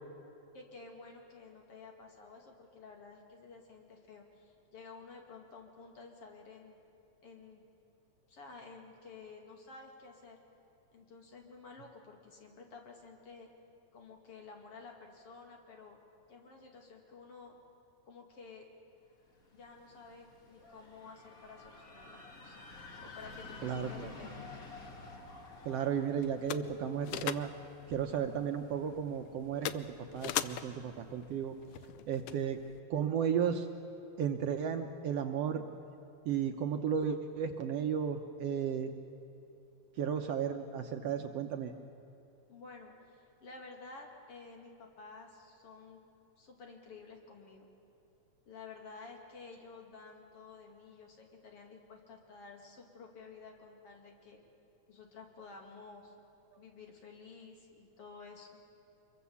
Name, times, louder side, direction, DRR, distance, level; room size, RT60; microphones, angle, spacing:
voice 1, 0.5-6.8 7.2-7.7 8.3-10.4 10.9-13.5 13.9-16.0 16.3-17.6 18.1-18.7 19.5-22.6 23.0-24.5 42.5-46.1 46.4-47.7 48.4-54.4 54.9-56.1 56.6-58.5, left 4 dB, 50° left, 2 dB, 3.2 m, -52 dB
sound 1, 19.3-29.2, left 3 dB, 30° left, 2.1 m, -51 dB
voice 2, 23.6-24.1 25.6-27.5 27.9-31.6 32.1-32.6 32.9-33.7 34.2-35.6 36.2-38.9 40.0-41.7, right 8 dB, 70° right, 5 dB, 1.7 m, -34 dB
sound 2, 24.8-32.8, left 11 dB, 90° left, 1.2 m, -43 dB
25.5 x 22.5 x 7.1 m, 2.9 s
omnidirectional pair, 3.4 m